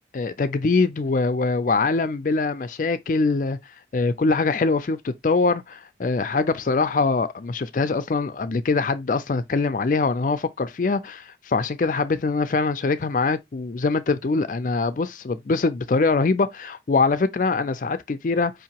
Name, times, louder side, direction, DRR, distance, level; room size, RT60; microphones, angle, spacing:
voice 1, 0.1-3.6 3.9-18.5, left 3 dB, 45° left, 0.4 m, -23 dB
5.1 x 2.8 x 2.8 m
head